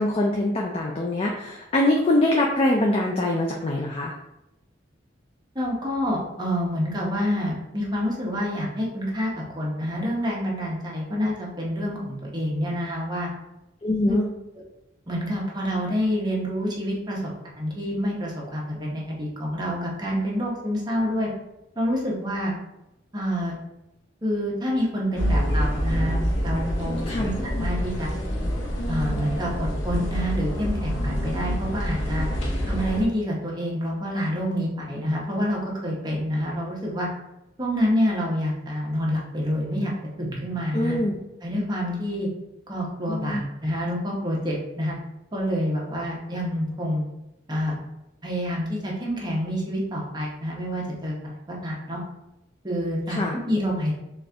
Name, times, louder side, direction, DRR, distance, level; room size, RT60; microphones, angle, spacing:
voice 1, 0.0-4.1 13.8-14.3 27.1-27.3 40.7-41.1 43.1-43.4 53.2-53.3, left 1 dB, 30° left, 0 dB, 0.3 m, -23 dB
voice 2, 5.5-13.3 15.1-21.3 21.8-22.6 23.1-23.6 24.2-27.3 27.6-28.1 28.9-32.3 32.7-37.1 37.6-39.9 40.2-41.0 41.4-42.3 42.7-45.0 45.3-47.1 47.5-47.8 48.2-52.0 52.6-53.9, equal, 20° right, -3 dB, 0.8 m, -27 dB
sound 1, 25.2-33.0, equal, 75° left, 0.8 m, -26 dB
4.2 x 2.4 x 3.3 m, 0.91 s
head